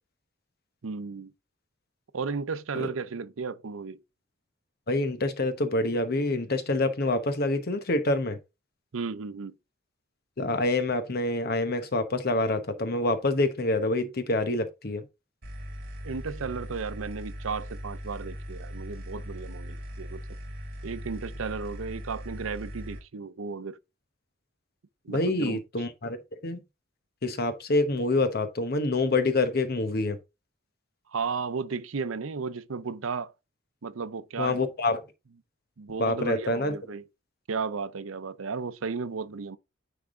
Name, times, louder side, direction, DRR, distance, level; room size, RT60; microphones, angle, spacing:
voice 1, 0.8-1.3 2.1-4.0 8.9-9.5 16.0-20.2 20.8-23.8 25.0-25.6 31.1-33.3 33.8-34.6 35.8-37.0 37.5-39.6, right 5 dB, 90° right, 0.6 m, -34 dB
voice 2, 4.9-8.4 10.4-15.0 25.1-26.2 26.4-26.6 27.2-30.2 34.4-35.0 36.0-36.7, left 2 dB, 50° left, 1.0 m, -26 dB
sound 1, 15.4-23.0, equal, 50° right, 3.0 m, -39 dB
9.8 x 3.5 x 3.8 m
head